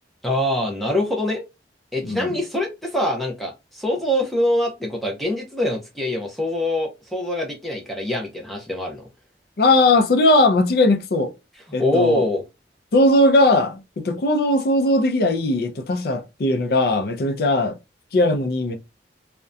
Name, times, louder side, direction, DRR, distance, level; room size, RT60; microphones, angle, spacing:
voice 1, 0.2-1.4 1.9-9.0 11.8-12.4, left 1 dB, ahead, 0.5 m, -24 dB
voice 2, 9.6-11.3 11.7-12.2 12.9-17.7 18.1-18.8, left 2 dB, 55° left, 0.4 m, -18 dB
2.6 x 2.1 x 2.3 m
head